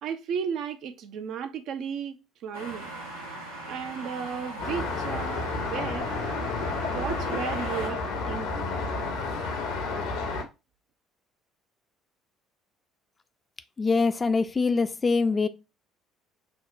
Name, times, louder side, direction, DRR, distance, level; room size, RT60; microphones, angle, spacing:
voice 1, 0.0-2.9 3.7-6.1 6.9-8.8, right 7 dB, 60° right, 0.5 m, -34 dB
sound 1, 2.5-7.9, right 1 dB, 90° right, 0.7 m, -39 dB
Traffic noise roadway noise, 4.6-10.4, left 3 dB, 70° left, 0.8 m, -31 dB
voice 2, 13.8-15.5, left 4 dB, 30° left, 0.4 m, -24 dB
5.6 x 2.0 x 2.5 m
figure-of-eight pair, 55°, 0 cm